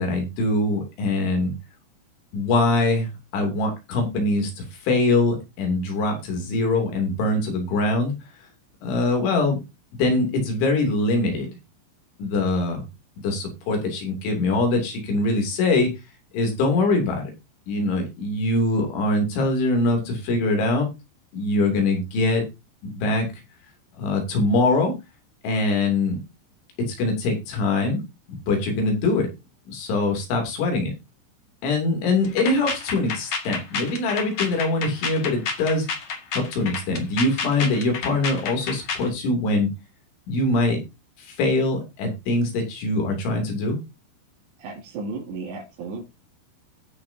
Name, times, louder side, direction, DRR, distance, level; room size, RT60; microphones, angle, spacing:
voice 1, 0.0-1.5 2.3-8.1 8.8-9.6 9.9-11.5 12.2-12.8 13.2-15.9 16.3-17.3 17.7-20.9 21.3-22.5 22.8-23.3 24.0-24.9 25.4-26.2 26.8-28.0 28.3-29.3 29.7-30.9 31.6-35.9 36.3-39.7 40.3-40.8 41.2-43.8, left 2 dB, 70° left, 3 dB, 5.2 m, -23 dB
sound 1, 32.2-39.1, left 5 dB, 50° left, 1.9 m, -30 dB
voice 2, 44.6-46.0, right 3 dB, 65° right, -6 dB, 4.4 m, -34 dB
18.0 x 6.8 x 2.7 m, 0.24 s
omnidirectional pair, 5.7 m